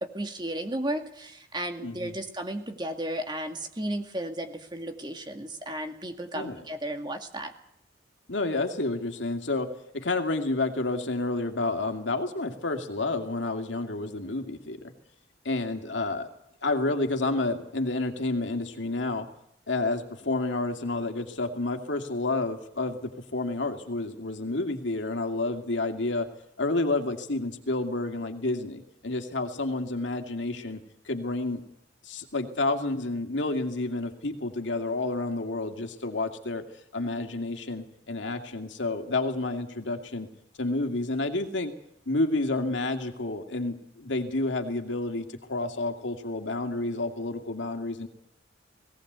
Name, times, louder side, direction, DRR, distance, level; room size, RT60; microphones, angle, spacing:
voice 1, 0.0-7.5, right 1 dB, 25° right, 5 dB, 2.1 m, -34 dB
voice 2, 1.8-2.1 6.3-6.6 8.3-14.9 15.4-16.3 16.6-19.3 19.7-26.3 26.6-30.8 31.1-31.6 32.0-36.6 36.9-40.3 40.6-41.7 42.1-48.1, left 2 dB, 80° left, 5 dB, 2.4 m, -30 dB
18.5 x 18.0 x 8.2 m, 0.77 s
head